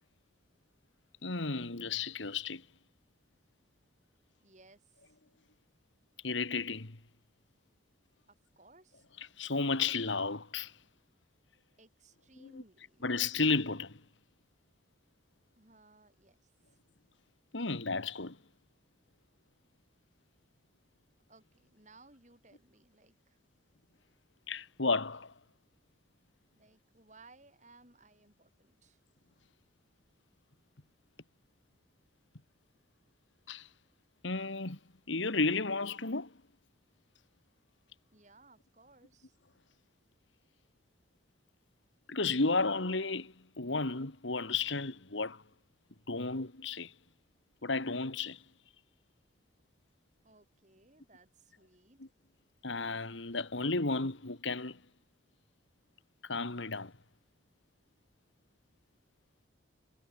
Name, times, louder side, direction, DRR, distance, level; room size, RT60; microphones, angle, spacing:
voice 1, 1.2-2.6 6.2-7.0 9.4-10.7 12.4-12.6 13.0-14.0 17.5-18.4 24.5-25.3 33.5-33.7 34.2-34.8 35.1-36.3 42.1-45.4 46.1-46.9 47.6-48.4 52.0-52.1 52.6-54.8 56.2-56.9, left 3 dB, 75° left, 2.0 m, -33 dB
voice 2, 4.4-5.2 8.6-9.1 11.8-13.0 15.6-16.8 21.3-23.4 26.6-29.0 38.1-39.4 50.2-52.0, right 3 dB, 40° right, 6.1 m, -61 dB
head